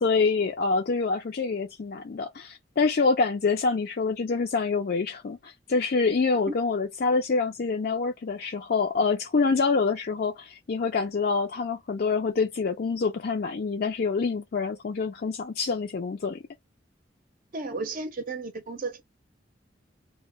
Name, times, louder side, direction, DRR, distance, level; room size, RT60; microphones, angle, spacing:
voice 1, 0.0-16.4, left 4 dB, 55° left, 0.4 m, -26 dB
voice 2, 17.5-19.0, right 3 dB, 50° right, 0.6 m, -33 dB
2.1 x 2.1 x 3.7 m
head